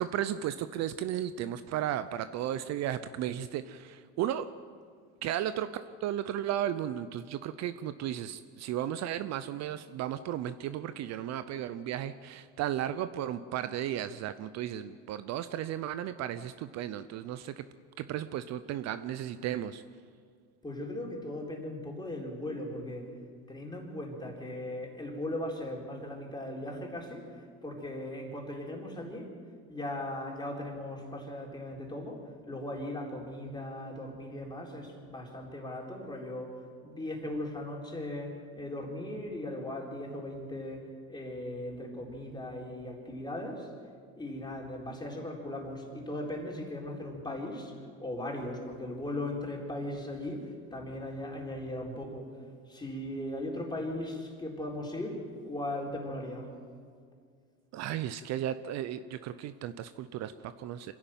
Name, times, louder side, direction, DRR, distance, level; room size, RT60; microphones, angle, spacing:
voice 1, 0.0-4.5 5.2-17.6 18.0-19.8 57.7-60.9, right 11 dB, 50° right, 13 dB, 0.7 m, -34 dB
voice 2, 20.6-23.1 23.5-29.3 29.7-43.7 44.2-47.7 48.0-52.3 52.7-56.5, left 1 dB, 15° left, -1 dB, 4.2 m, -38 dB
25.5 x 11.0 x 9.1 m, 2.1 s
supercardioid pair, 105°, 33 cm